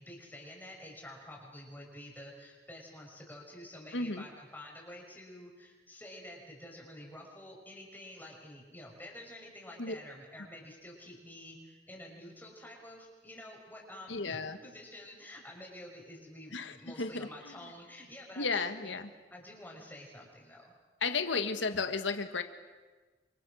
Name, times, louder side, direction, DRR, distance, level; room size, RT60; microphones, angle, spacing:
voice 1, 0.0-18.9 19.3-20.7, left 1 dB, 10° left, -1 dB, 6.0 m, -49 dB
voice 2, 3.9-4.3 9.8-10.0 14.1-14.6 16.5-17.3 18.4-19.1 21.0-22.4, left 4 dB, 85° left, 8 dB, 1.6 m, -33 dB
29.0 x 25.5 x 6.4 m, 1.3 s
head